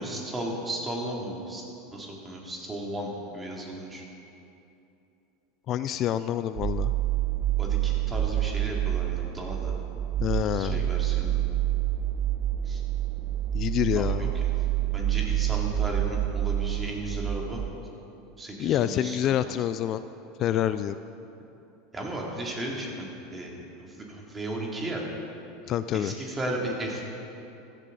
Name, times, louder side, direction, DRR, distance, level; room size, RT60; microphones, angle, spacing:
voice 1, 0.0-1.6 1.9-4.0 7.6-9.7 10.5-11.4 12.6-12.8 14.0-14.4 14.9-17.6 18.4-19.2 19.5-19.6 21.9-25.1 25.9-27.1, right 1 dB, 20° right, -2 dB, 3.2 m, -35 dB
voice 2, 5.7-6.9 10.2-10.9 13.5-14.3 18.6-20.0 20.4-21.0 25.7-26.2, left 11 dB, 45° left, 13 dB, 0.4 m, -27 dB
sound 1, 6.6-17.7, right 12 dB, 45° right, 0.5 m, -28 dB
16.0 x 13.5 x 4.2 m, 2.8 s
hypercardioid pair, 80°, 0 cm